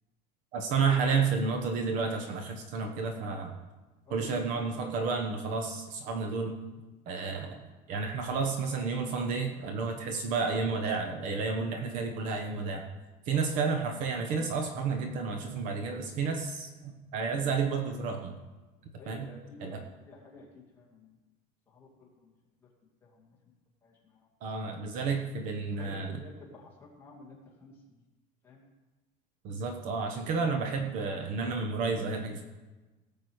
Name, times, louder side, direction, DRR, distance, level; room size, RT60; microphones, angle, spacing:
voice 1, 0.5-3.5 4.1-6.6 7.1-7.6 7.9-12.8 13.3-18.3 19.1-19.3 19.6-19.8 24.4-26.2 29.4-32.4, right 4 dB, 45° right, 5 dB, 1.0 m, -31 dB
voice 2, 4.0-4.6 7.4-7.6 13.3-13.6 19.0-20.5 20.8-21.1 21.7-22.3 22.6-22.7 23.0-23.4 23.8-24.3 25.7-27.7 28.4-28.6, left 3 dB, 10° left, -4 dB, 2.2 m, -51 dB
17.5 x 7.0 x 4.7 m, 1.2 s
cardioid pair, 180°, 18 cm